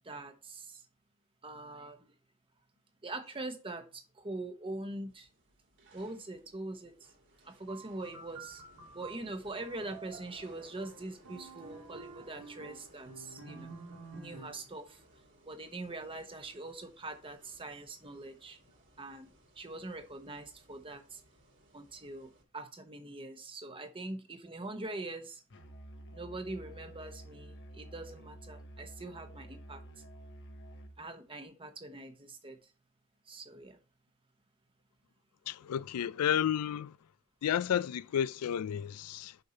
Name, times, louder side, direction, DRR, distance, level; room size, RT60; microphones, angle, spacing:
voice 1, 0.0-0.8 1.4-2.1 3.0-5.3 5.9-7.1 7.4-8.6 8.9-13.7 14.1-15.0 15.4-18.6 19.0-19.3 19.6-21.2 21.7-25.4 26.1-29.8 31.0-32.6 33.3-33.8, right 2 dB, 25° right, 1.1 m, -43 dB
sound 1, 5.1-22.4, right 1 dB, 55° right, 2.5 m, -62 dB
sound 2, 7.7-14.7, right 4 dB, 70° right, 2.1 m, -50 dB
Musical instrument, 25.5-31.0, right 1 dB, 55° left, 1.1 m, -50 dB
voice 2, 35.5-37.0 37.4-39.4, left 9 dB, 85° left, 0.4 m, -31 dB
6.8 x 5.5 x 4.3 m
head